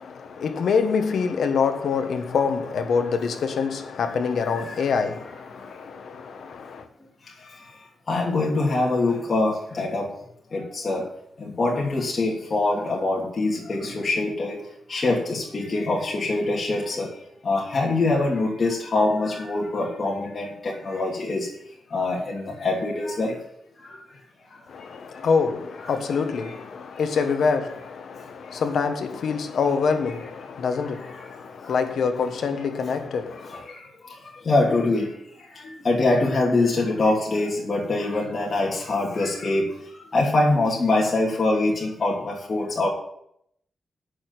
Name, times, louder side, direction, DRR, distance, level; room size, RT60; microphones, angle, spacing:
voice 1, 0.0-6.9 24.7-33.7, left 5 dB, 75° left, 1.3 m, -26 dB
voice 2, 4.6-5.0 8.1-10.1 10.5-11.0 11.4-14.6 14.9-17.1 17.4-21.5 21.9-23.3 26.4-26.6 31.0-31.2 31.6-31.8 33.5-33.8 34.4-35.1 35.6-39.7 40.1-42.9, left 2 dB, 45° left, 2.9 m, -24 dB
8.5 x 6.5 x 8.3 m
cardioid pair, 75°, 0 cm